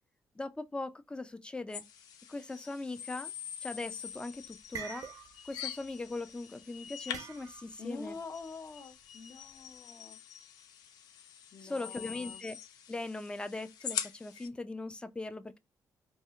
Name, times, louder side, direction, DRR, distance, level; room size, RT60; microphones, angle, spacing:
voice 1, 0.4-1.8 2.3-3.3 3.6-5.0 5.4-8.2 11.6-12.6 12.9-15.6, left 2 dB, 15° left, 0.4 m, -40 dB
sound 1, 1.7-14.5, left 9 dB, 80° left, 0.4 m, -44 dB
sound 2, 3.9-4.2 4.5-5.6 5.8-6.1 7.1-7.8, right 7 dB, 65° right, 0.5 m, -45 dB
voice 2, 7.8-10.2 11.5-12.4, left 4 dB, 45° left, 0.7 m, -46 dB
2.7 x 2.0 x 3.5 m
cardioid pair, 75°, 7 cm